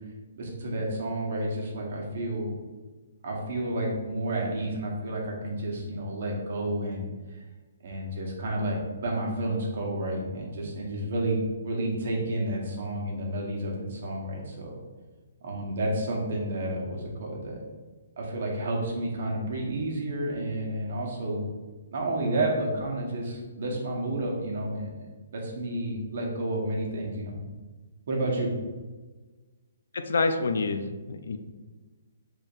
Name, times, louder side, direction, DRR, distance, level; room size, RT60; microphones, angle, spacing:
voice 1, 0.4-2.5 3.2-7.1 7.8-14.8 15.4-17.6 18.2-21.5 21.9-24.9 25.3-27.4 28.1-28.5, right 1 dB, 60° right, -1 dB, 1.2 m, -30 dB
voice 2, 30.1-30.8 31.1-31.4, left 3 dB, 75° left, 8 dB, 0.4 m, -26 dB
5.2 x 3.6 x 2.5 m, 1.3 s
hypercardioid pair, 140°, 0 cm